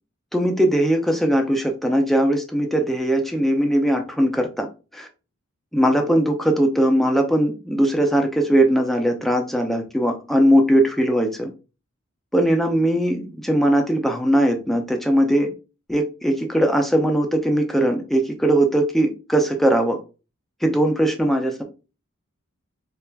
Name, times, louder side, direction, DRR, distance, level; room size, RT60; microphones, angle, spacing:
voice 1, 0.3-4.7 4.9-5.1 5.7-11.5 12.3-15.5 15.9-20.0 20.6-21.6, right 1 dB, ahead, 0.4 m, -20 dB
4.3 x 2.4 x 2.2 m
head